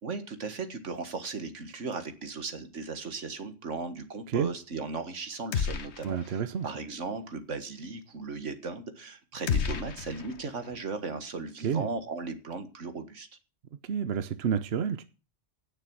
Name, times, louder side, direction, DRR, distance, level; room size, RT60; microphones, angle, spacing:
voice 1, 0.0-13.3, right 4 dB, 75° right, 2.0 m, -37 dB
sound 1, 5.5-6.4 6.7-6.8 9.5-10.8, left 6 dB, 65° left, 1.2 m, -32 dB
voice 2, 6.0-6.7 11.6-11.9 13.8-15.0, right 7 dB, 60° right, 1.0 m, -29 dB
16.5 x 6.8 x 6.2 m
omnidirectional pair, 1.3 m